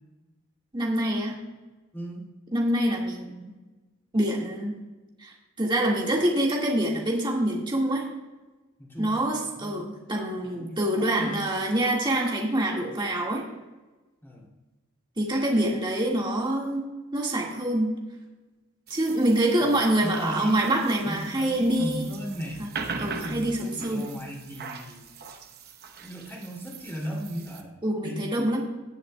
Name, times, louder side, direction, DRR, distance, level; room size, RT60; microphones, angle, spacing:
voice 1, 0.7-1.4 2.5-3.5 4.1-4.7 5.2-8.1 9.0-13.4 15.2-16.8 17.1-17.9 18.9-22.1 22.6-22.7 23.0-24.0 27.8-28.6, right 1 dB, 20° right, -2 dB, 1.7 m, -25 dB
voice 2, 1.9-2.3 8.8-9.2 9.4-9.8 10.6-11.4 14.2-14.5 19.6-19.7 20.0-20.7 21.0-22.7 23.1-25.1 26.0-28.3, equal, 10° left, -3 dB, 2.5 m, -37 dB
sound 1, 18.9-27.6, right 4 dB, 50° right, 0.9 m, -41 dB
18.0 x 7.8 x 2.2 m, 1.2 s
head